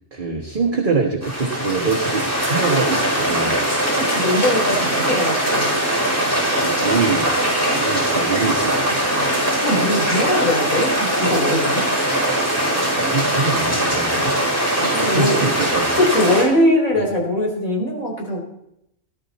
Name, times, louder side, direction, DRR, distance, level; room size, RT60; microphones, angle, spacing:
voice 1, 0.1-3.6 6.5-9.4 13.0-14.3 15.0-15.9 16.9-17.1, right 4 dB, 40° right, 1 dB, 1.5 m, -24 dB
sound 1, 1.2-16.4, right 1 dB, 10° left, 5.5 m, -21 dB
voice 2, 2.9-3.4 4.0-5.7 9.6-11.8 14.7-15.4 16.0-18.4, left 1 dB, 85° left, 0 dB, 4.3 m, -21 dB
18.0 x 12.0 x 4.2 m, 0.79 s
omnidirectional pair, 1.4 m